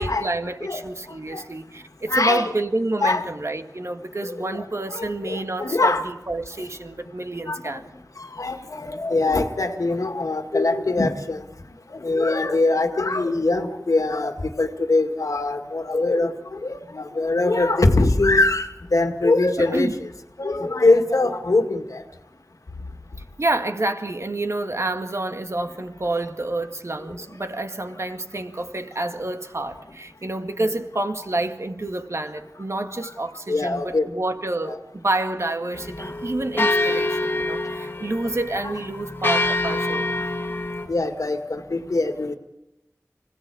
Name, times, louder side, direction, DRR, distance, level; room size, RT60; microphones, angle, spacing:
voice 1, 0.0-7.8 19.6-20.0 23.4-40.1, right 2 dB, 55° right, 1.9 m, -28 dB
voice 2, 2.1-2.5 3.0-3.3 4.4-4.6 4.9-6.0 7.5-7.8 8.2-11.4 11.9-19.9 20.4-22.0 33.5-34.1 34.6-34.8 40.9-42.4, left 2 dB, 80° left, 1.9 m, -22 dB
sound 1, 35.7-40.9, left 2 dB, 40° left, 1.7 m, -25 dB
25.5 x 17.0 x 8.4 m
wide cardioid pair, 50°, 6 cm